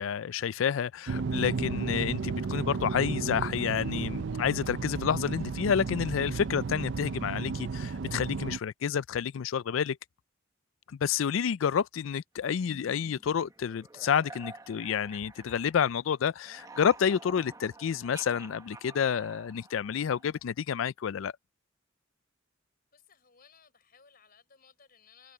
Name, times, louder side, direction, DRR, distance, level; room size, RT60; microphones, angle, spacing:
voice 1, 0.0-10.0 10.9-21.3, left 7 dB, 80° left, 0.4 m, -29 dB
sound 1, 1.1-8.6, right 4 dB, 60° right, 0.5 m, -33 dB
sound 2, 12.6-16.1 16.3-20.4, right 3 dB, 15° right, 1.1 m, -50 dB
voice 2, 22.9-25.3, left 6 dB, 50° left, 4.8 m, -60 dB
head